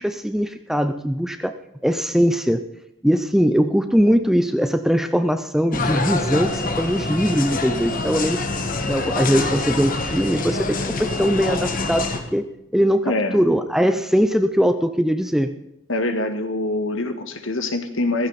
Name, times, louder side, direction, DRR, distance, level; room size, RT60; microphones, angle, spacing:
voice 1, 0.0-2.6 3.0-8.5 8.9-12.4 12.7-15.5, equal, ahead, 9 dB, 0.5 m, -21 dB
sound 1, 5.7-12.2, left 3 dB, 40° left, 1.6 m, -25 dB
voice 2, 13.1-13.4 15.9-18.3, left 2 dB, 60° left, 7 dB, 1.8 m, -24 dB
16.0 x 15.0 x 4.2 m, 0.86 s
head